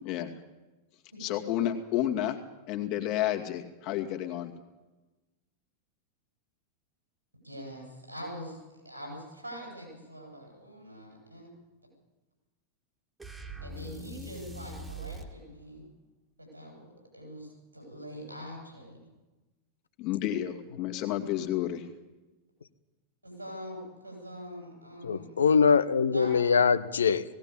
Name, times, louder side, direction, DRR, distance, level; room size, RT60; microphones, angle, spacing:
voice 1, 1.2-2.4 2.7-4.5 20.0-21.9, left 12 dB, 40° left, 4 dB, 2.3 m, -31 dB
voice 2, 7.4-8.6 8.8-11.5 13.6-15.8 16.4-19.0 23.2-25.4 26.1-26.3, equal, 85° right, 0 dB, 7.8 m, -44 dB
sound 1, 13.2-15.4, right 1 dB, 10° right, 2.0 m, -42 dB
voice 3, 25.0-27.2, left 6 dB, 70° left, 14 dB, 0.9 m, -23 dB
18.0 x 17.0 x 8.7 m, 1.1 s
figure-of-eight pair, 90°, 0 cm